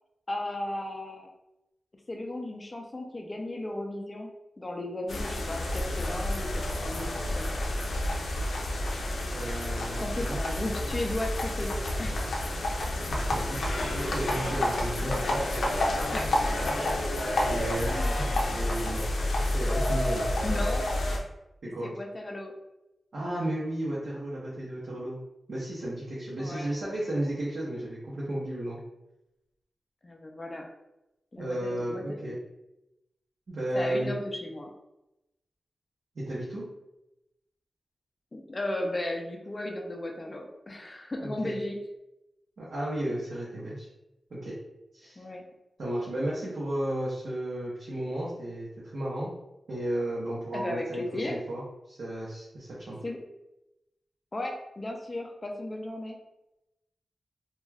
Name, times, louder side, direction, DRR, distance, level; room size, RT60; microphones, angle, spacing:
voice 1, 0.3-1.3 2.1-7.5 10.0-12.3 16.1-16.3 17.9-18.2 20.4-20.9 21.8-22.5 26.4-26.7 30.0-30.7 31.3-32.4 33.7-34.7 38.3-41.8 45.2-45.4 50.5-51.4 53.0-53.2 54.3-56.2, left 1 dB, 25° left, 2 dB, 0.3 m, -35 dB
sound 1, 5.1-21.2, left 1 dB, 90° left, 0.4 m, -29 dB
voice 2, 9.3-10.5 13.1-15.4 17.5-18.1 18.5-19.1 19.5-20.3 21.7-21.9 23.1-25.2 25.5-28.8 31.4-32.4 33.5-34.1 36.2-36.6 41.2-41.5 42.6-43.9 44.3-44.6 44.9-45.2 45.8-49.3 49.7-53.0, right 1 dB, 65° right, -7 dB, 0.7 m, -33 dB
2.2 x 2.2 x 3.2 m, 0.92 s
wide cardioid pair, 145°, 0 cm